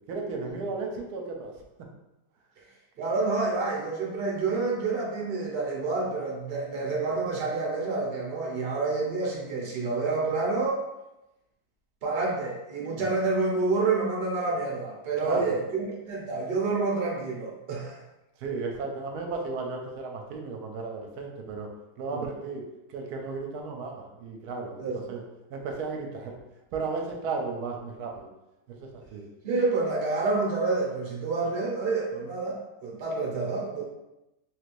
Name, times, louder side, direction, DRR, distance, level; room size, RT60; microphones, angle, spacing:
voice 1, 0.1-1.5 13.0-13.1 15.2-15.6 18.4-21.7 22.0-22.6 22.9-25.2 25.5-26.4 26.7-28.3 28.7-29.3, right 4 dB, 75° right, 1 dB, 1.0 m, -34 dB
voice 2, 3.0-10.8 12.0-18.0 22.1-22.2 24.8-25.2 29.4-33.8, right 3 dB, 55° right, -3 dB, 0.6 m, -28 dB
3.1 x 3.0 x 2.5 m, 0.96 s
omnidirectional pair, 1.8 m